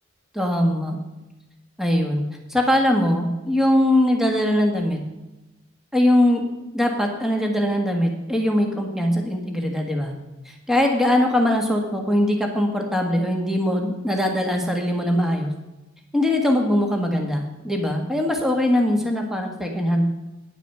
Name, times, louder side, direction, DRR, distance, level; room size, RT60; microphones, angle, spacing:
voice 1, 0.3-1.0 1.8-2.2 2.5-5.0 5.9-6.4 6.7-10.1 10.5-15.5 16.1-20.1, left 1 dB, ahead, 2 dB, 1.6 m, -21 dB
9.9 x 9.0 x 6.8 m, 1.0 s
head